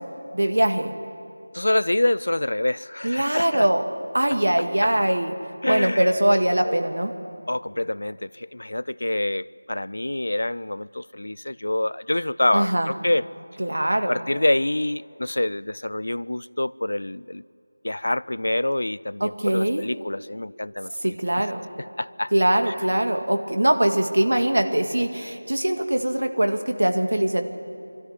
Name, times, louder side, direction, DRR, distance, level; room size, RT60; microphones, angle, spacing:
voice 1, 0.3-0.9 3.0-3.8 4.1-5.3 5.6-7.1 12.5-12.9 13.6-14.2 19.2-19.8 20.9-21.6 22.3-27.5, right 1 dB, 80° right, 6 dB, 2.0 m, -22 dB
voice 2, 1.5-3.7 4.8-4.9 5.6-6.1 6.6-6.8 7.5-13.3 14.1-17.4 17.8-21.5 22.0-22.3 22.7-22.8, left 1 dB, 70° left, 20 dB, 0.4 m, -26 dB
24.0 x 13.5 x 9.7 m, 2.6 s
figure-of-eight pair, 175°, 0 cm